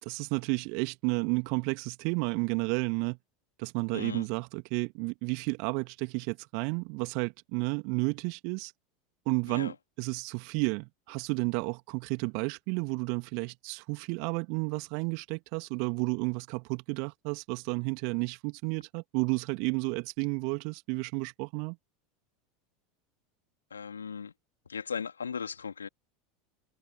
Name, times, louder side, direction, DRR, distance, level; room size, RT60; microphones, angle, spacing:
voice 1, 0.0-3.2 3.6-8.7 9.3-21.8, right 36 dB, 50° right, 2.3 m, -32 dB
voice 2, 3.9-4.3 9.5-9.7 23.7-24.3 24.7-25.9, left 6 dB, 75° left, 3.2 m, -37 dB
figure-of-eight pair, 80°, 0 cm